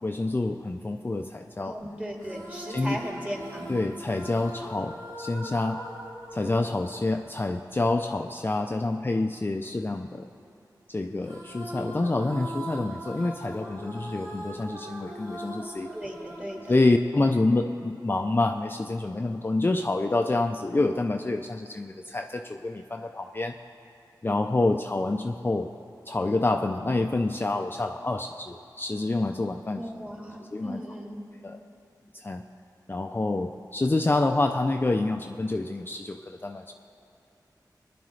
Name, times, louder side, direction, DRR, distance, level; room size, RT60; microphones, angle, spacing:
voice 1, 0.0-1.8 2.7-3.0 3.7-5.8 6.3-10.3 10.9-15.9 16.7-23.6 24.2-25.7 26.1-29.8 30.5-30.8 31.4-31.6 32.1-32.4 32.9-36.7, left 2 dB, 30° left, 4 dB, 0.4 m, -27 dB
voice 2, 1.6-3.8 15.9-16.7 29.7-31.2, equal, 15° right, -1 dB, 2.1 m, -37 dB
sound 1, 2.2-7.7 11.2-17.6, right 1 dB, 65° right, 3.2 m, -41 dB
18.5 x 11.0 x 3.2 m, 2.7 s
wide cardioid pair, 60°, 8 cm